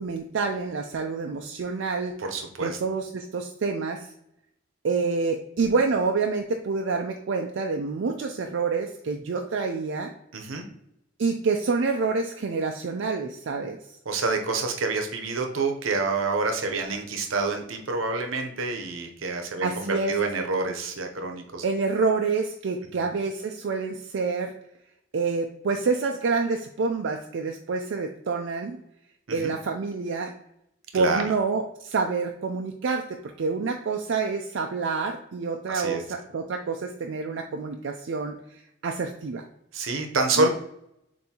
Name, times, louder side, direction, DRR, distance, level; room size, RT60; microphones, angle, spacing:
voice 1, 0.0-2.1 2.6-4.1 4.8-10.1 11.2-13.8 19.6-20.1 21.6-24.5 25.1-28.8 29.3-30.3 30.9-39.4 40.4-40.5, right 4 dB, 70° right, 3 dB, 0.4 m, -27 dB
voice 2, 2.2-2.8 10.3-10.6 14.1-21.6 23.0-23.1 29.3-29.5 30.9-31.2 35.7-36.0 39.7-40.5, right 3 dB, 90° right, 4 dB, 0.8 m, -27 dB
7.0 x 2.6 x 2.9 m, 0.76 s
head